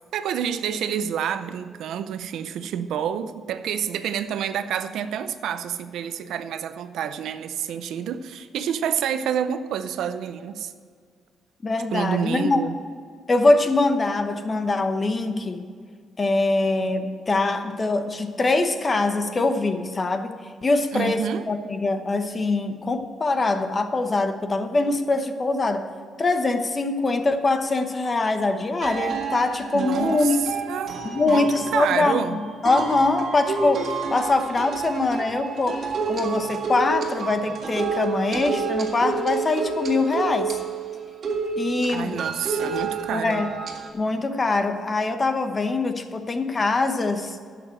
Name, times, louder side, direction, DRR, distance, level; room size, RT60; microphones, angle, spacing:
voice 1, 0.1-10.7 11.9-12.8 20.9-21.4 29.7-30.4 30.7-32.4 41.9-43.4, right 8 dB, 80° right, 11 dB, 0.6 m, -28 dB
voice 2, 11.6-12.6 13.3-15.7 16.2-20.3 20.6-25.9 26.2-30.5 31.0-35.8 36.1-40.6 41.5-42.1 43.1-43.5 43.9-47.4, left 3 dB, 25° left, 8 dB, 1.0 m, -23 dB
sound 1, 28.0-28.1 28.8-43.9, right 5 dB, 55° right, 1.9 m, -29 dB
11.0 x 6.9 x 7.5 m, 2.1 s
cardioid pair, 125°, 0 cm